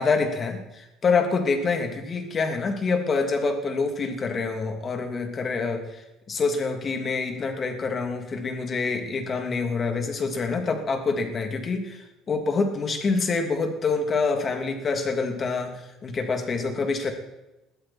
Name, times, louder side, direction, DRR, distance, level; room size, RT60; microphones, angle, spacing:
voice 1, 0.0-17.1, left 4 dB, 35° left, 4 dB, 2.9 m, -26 dB
21.5 x 14.0 x 4.5 m, 0.95 s
supercardioid pair, 95°, 0 cm